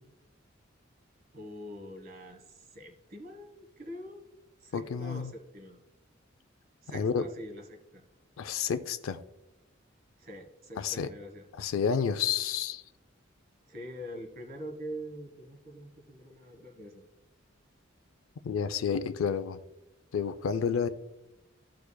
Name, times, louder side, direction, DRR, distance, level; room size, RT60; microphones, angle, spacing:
voice 1, 1.3-4.3 4.6-5.8 6.8-8.0 10.2-11.5 13.7-17.0, equal, 45° right, 1.3 m, -44 dB
voice 2, 4.7-5.3 6.9-7.2 8.4-9.2 10.8-11.1 11.6-12.8 18.4-19.6 20.1-20.9, left 6 dB, 90° left, 0.4 m, -30 dB
14.0 x 4.7 x 2.2 m
head